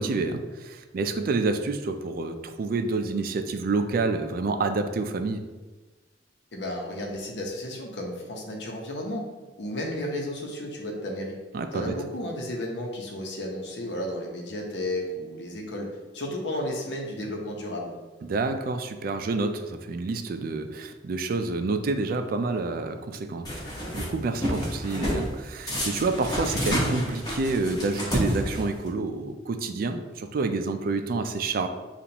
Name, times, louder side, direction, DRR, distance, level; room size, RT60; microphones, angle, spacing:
voice 1, 0.0-5.4 11.5-11.9 18.2-23.5 23.9-31.7, right 3 dB, 55° right, 7 dB, 0.4 m, -28 dB
voice 2, 6.5-9.2 9.6-11.4 11.7-17.9, left 1 dB, 75° left, 0 dB, 0.9 m, -33 dB
sound 1, 23.4-24.1 24.4-25.2 25.7-28.9, equal, 25° left, 1.3 m, -29 dB
6.8 x 2.5 x 2.9 m, 1.2 s
head